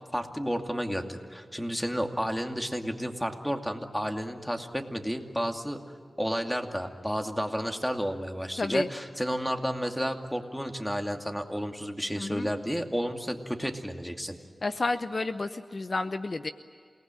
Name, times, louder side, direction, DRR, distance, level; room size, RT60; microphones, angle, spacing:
voice 1, 0.1-5.8 6.2-14.4, equal, ahead, 4 dB, 2.5 m, -31 dB
voice 2, 12.2-12.5 14.6-16.5, left 3 dB, 50° left, 10 dB, 0.8 m, -31 dB
28.0 x 19.5 x 9.1 m, 2.2 s
cardioid pair, 55°, 0 cm